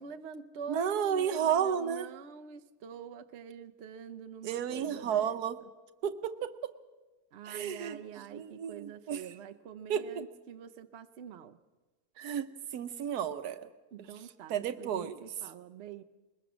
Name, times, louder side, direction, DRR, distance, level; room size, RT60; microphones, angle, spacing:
voice 1, 0.0-5.4 7.3-11.6 13.9-16.0, right 7 dB, 55° right, 8 dB, 1.0 m, -46 dB
voice 2, 0.7-2.1 4.4-5.6 6.0-6.5 7.5-8.0 8.3-9.2 9.9-10.2 12.2-13.7 14.0-14.1 14.5-15.2, right 8 dB, 85° right, 11 dB, 1.4 m, -32 dB
21.0 x 21.0 x 6.1 m, 1.2 s
omnidirectional pair, 1.6 m